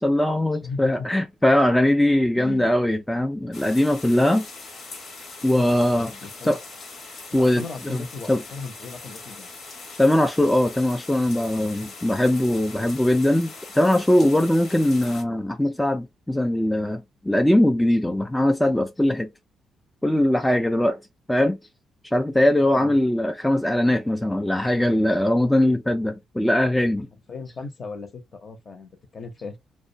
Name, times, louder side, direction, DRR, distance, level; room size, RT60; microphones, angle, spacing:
voice 1, 0.0-4.5 5.4-6.1 6.4-6.6 7.3-8.4 10.0-19.3 20.0-21.0 21.3-21.6 22.0-27.1, left 1 dB, 5° left, 0.3 m, -21 dB
voice 2, 0.6-1.1 2.4-2.7 5.6-6.6 7.3-9.5 22.7-22.9 27.3-29.6, left 4 dB, 40° left, 0.7 m, -37 dB
sound 1, 3.5-15.2, left 3 dB, 70° left, 1.0 m, -41 dB
2.3 x 2.1 x 2.6 m
cardioid pair, 90°, 0 cm